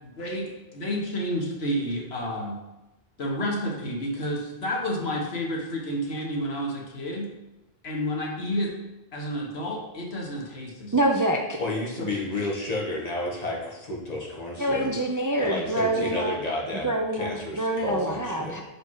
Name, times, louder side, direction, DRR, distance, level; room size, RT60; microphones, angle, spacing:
voice 1, 0.0-2.6 3.2-7.3 7.8-8.7 9.1-11.1 12.0-12.1, equal, 80° left, -1 dB, 1.5 m, -30 dB
voice 2, 10.9-11.6 14.6-16.4 16.8-18.6, right 1 dB, 25° right, 2 dB, 0.4 m, -26 dB
voice 3, 11.6-14.9 15.4-18.5, left 2 dB, 40° left, -3 dB, 1.6 m, -31 dB
5.7 x 5.1 x 4.7 m, 1.0 s
omnidirectional pair, 1.0 m